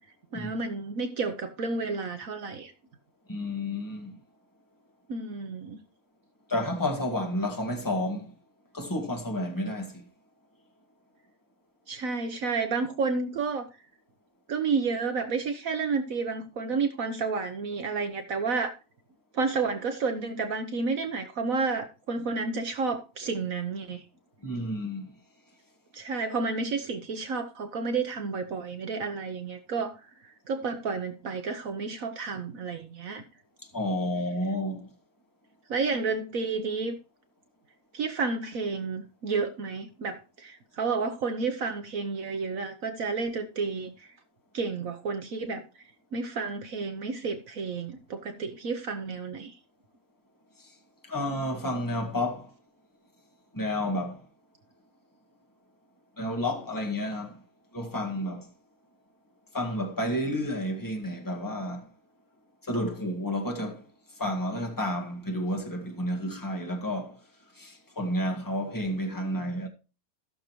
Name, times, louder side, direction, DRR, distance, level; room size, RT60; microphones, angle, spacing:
voice 1, 0.3-2.7 5.1-5.8 11.9-13.7 14.5-18.7 19.3-24.0 25.9-29.9 30.2-33.2 35.7-37.0 37.9-44.1 44.5-45.6 46.1-49.5, right 4 dB, 65° right, 1.3 m, -31 dB
voice 2, 3.3-4.2 6.5-8.3 8.7-10.1 24.4-25.1 33.7-34.9 50.6-50.7 51.1-52.5 53.5-54.2 56.2-57.4 57.7-58.5 59.5-61.9 62.6-63.9 64.2-67.2 67.6-69.7, left 1 dB, 15° left, 1.7 m, -31 dB
16.5 x 6.5 x 3.1 m
omnidirectional pair, 1.6 m